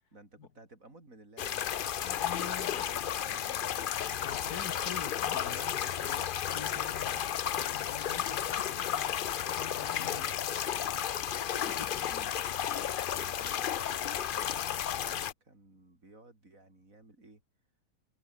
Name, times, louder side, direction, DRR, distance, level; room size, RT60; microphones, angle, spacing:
voice 1, 0.1-1.9 2.5-4.6 7.0-7.4 10.0-11.1 13.1-17.4, right 2 dB, 60° right, 5.7 m, -55 dB
sound 1, 1.4-15.3, left 9 dB, 65° left, 0.5 m, -33 dB
voice 2, 2.0-2.9 4.2-7.2 7.6-10.2 10.9-12.9, left 7 dB, 80° left, 2.1 m, -46 dB
omnidirectional pair, 1.6 m